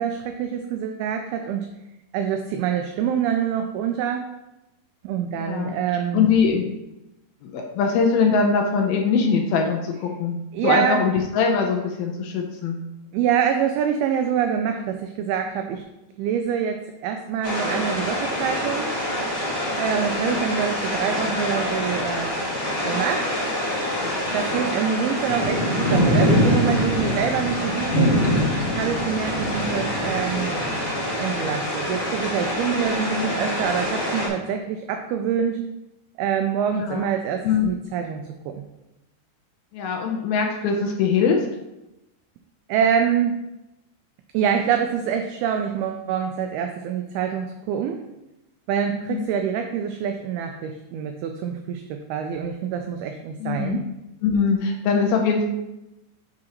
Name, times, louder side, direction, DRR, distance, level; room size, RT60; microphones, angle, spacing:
voice 1, 0.0-1.7 2.1-4.3 5.0-6.3 10.5-11.0 13.1-15.8 16.2-18.9 19.8-22.3 22.9-23.3 24.3-28.2 28.8-30.5 31.2-35.6 36.2-38.6 42.7-43.4 44.3-48.0 48.7-53.8, right 8 dB, 85° right, 5 dB, 2.2 m, -25 dB
voice 2, 5.4-5.8 6.1-6.7 7.4-10.4 10.6-12.8 20.2-20.4 22.9-23.1 29.6-29.8 33.1-33.4 36.7-37.1 37.4-37.7 39.7-41.5 48.9-49.2 53.4-53.8 54.2-55.5, left 5 dB, 75° left, 2 dB, 2.3 m, -22 dB
sound 1, 17.4-34.3, left 1 dB, 35° left, 0.8 m, -24 dB
8.7 x 6.2 x 2.9 m, 0.94 s
omnidirectional pair, 4.9 m